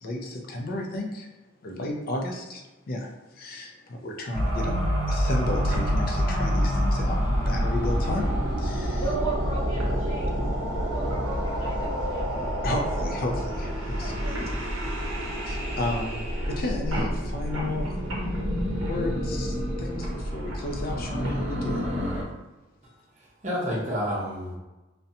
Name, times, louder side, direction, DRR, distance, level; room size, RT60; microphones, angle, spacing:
voice 1, 0.0-1.3 1.6-8.3 8.6-9.0 12.6-14.4 15.5-17.9 18.8-21.9, left 1 dB, 50° left, 1 dB, 0.4 m, -33 dB
sound 1, 4.3-22.2, equal, 75° right, 0.6 m, -28 dB
voice 2, 8.9-10.5 10.8-12.7 14.0-14.6, right 4 dB, 20° left, -8 dB, 0.9 m, -36 dB
voice 3, 22.8-24.6, equal, 35° right, -6 dB, 0.7 m, -31 dB
2.5 x 2.1 x 2.6 m, 1.1 s
head